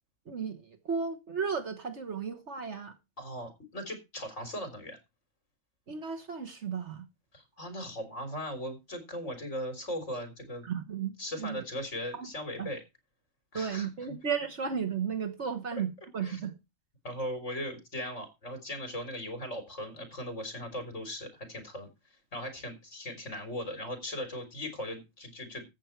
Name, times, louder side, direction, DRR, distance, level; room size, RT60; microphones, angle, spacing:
voice 1, 0.3-2.9 5.9-7.0 10.6-11.6 12.2-12.3 12.6-12.7 13.5-16.5, right 6 dB, 60° right, 1.6 m, -34 dB
voice 2, 3.2-5.0 7.3-10.7 11.2-12.8 13.5-13.9 16.2-16.4 17.0-21.9 22.3-25.6, equal, 65° left, 4.2 m, -38 dB
14.0 x 8.1 x 4.5 m
omnidirectional pair, 1.4 m